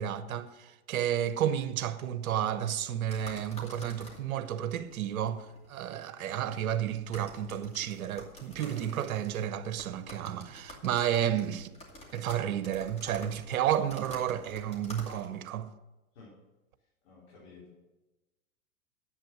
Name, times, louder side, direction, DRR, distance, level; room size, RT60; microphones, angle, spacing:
voice 1, 0.0-11.7 12.1-15.7, right 10 dB, 70° right, 1.0 m, -32 dB
sound 1, 3.0-15.5, left 1 dB, 15° left, 2.5 m, -50 dB
voice 2, 17.0-17.8, left 4 dB, 55° left, 4.6 m, -53 dB
10.5 x 8.3 x 6.1 m
hypercardioid pair, 115°, 44 cm